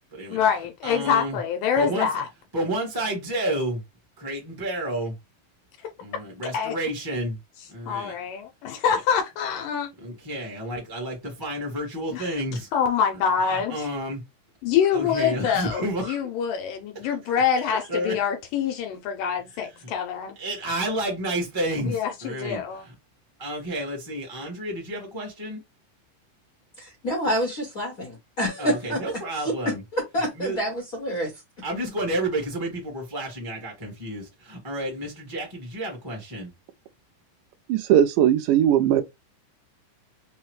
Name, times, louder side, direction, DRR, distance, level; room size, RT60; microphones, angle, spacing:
voice 1, 0.3-2.3 6.5-6.7 7.9-9.9 12.1-12.3 12.7-13.9 14.6-20.4 21.9-22.8, left 7 dB, 80° left, 2.3 m, -25 dB
voice 2, 0.8-1.4 1.7-2.2 2.5-3.8 4.2-5.2 6.0-7.4 7.7-8.2 8.9-9.0 10.0-12.7 13.1-14.2 14.9-16.2 16.9-17.2 17.9-18.2 19.5-19.9 20.3-22.9 23.4-25.6 28.6-29.8 30.3-30.6 31.6-36.5, right 1 dB, 35° right, 0.3 m, -31 dB
voice 3, 26.8-29.0 29.6-31.3, equal, 55° left, 1.0 m, -27 dB
voice 4, 37.7-39.0, right 10 dB, 80° right, 2.1 m, -19 dB
5.3 x 2.1 x 3.2 m
omnidirectional pair, 3.8 m